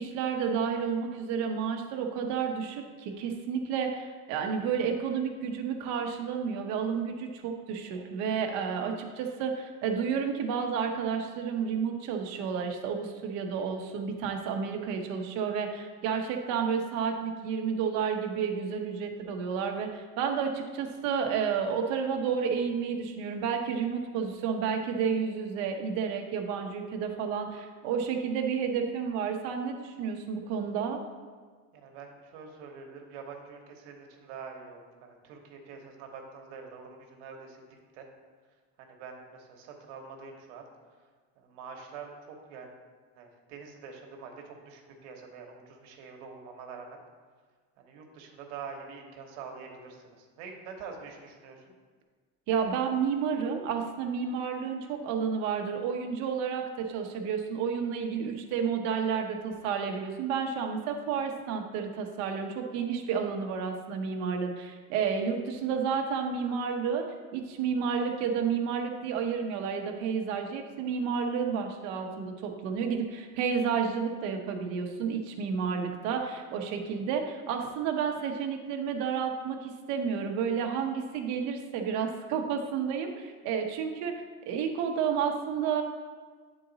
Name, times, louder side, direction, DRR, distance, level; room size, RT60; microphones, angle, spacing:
voice 1, 0.0-31.0 52.5-67.1 67.3-84.1 84.5-85.8, right 6 dB, 45° right, 3 dB, 0.8 m, -31 dB
voice 2, 31.8-37.6 37.9-38.1 38.8-40.6 41.4-42.7 43.2-47.0 47.8-51.7, right 5 dB, 70° right, 2 dB, 1.1 m, -45 dB
9.1 x 3.9 x 3.9 m, 1.5 s
cardioid pair, 175°, 37 cm